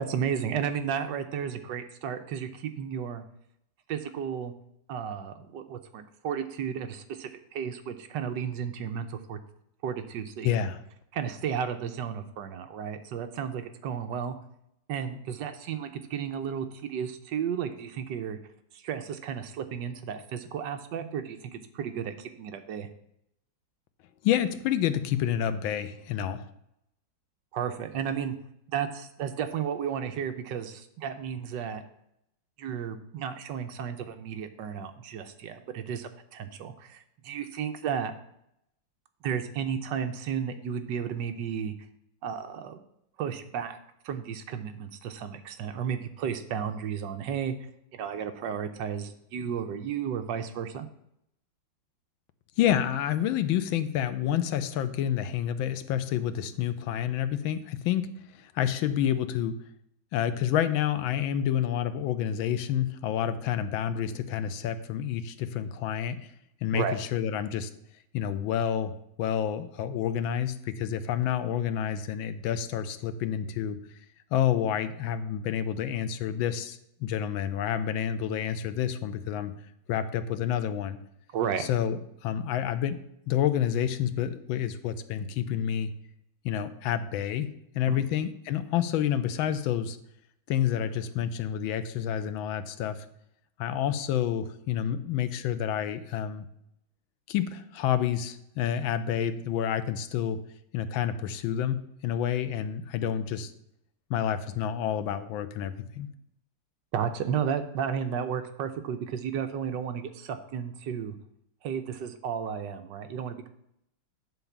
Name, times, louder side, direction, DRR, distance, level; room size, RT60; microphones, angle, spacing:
voice 1, 0.0-3.2 3.9-4.5 4.9-9.4 9.8-10.5 11.1-14.4 14.9-18.4 18.7-22.9 27.5-28.3 28.7-31.8 32.6-38.1 39.2-41.7 42.2-42.8 43.2-43.8 44.0-47.6 47.9-50.9 66.7-67.0 81.3-81.7 87.9-88.0 106.9-111.2 111.6-113.5, right 7 dB, 70° right, 8 dB, 1.3 m, -33 dB
voice 2, 10.4-10.8 24.2-26.5 52.6-59.6 60.1-66.3 66.6-67.7 68.1-68.9 69.2-73.8 74.3-79.5 79.9-81.0 81.6-83.0 83.3-85.9 86.4-87.5 87.7-90.0 90.5-93.0 93.6-96.5 97.3-100.4 100.7-103.5 104.1-106.1, left 10 dB, 90° left, 11 dB, 1.5 m, -29 dB
9.1 x 4.0 x 7.2 m, 0.77 s
omnidirectional pair, 2.1 m